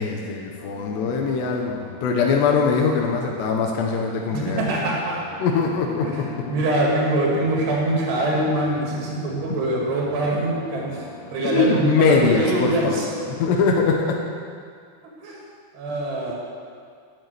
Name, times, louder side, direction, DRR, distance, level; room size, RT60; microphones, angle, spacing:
voice 1, 0.0-4.6 5.4-6.1 11.4-13.1 13.4-14.2, left 5 dB, 90° left, 1 dB, 3.1 m, -22 dB
sound 1, 0.6-13.9, left 1 dB, 30° left, 2.5 m, -42 dB
voice 2, 4.3-5.2 6.0-13.1 15.2-15.4 15.7-16.4, right 2 dB, 80° right, -3 dB, 4.3 m, -24 dB
8.8 x 8.8 x 8.2 m, 2.1 s
omnidirectional pair, 4.8 m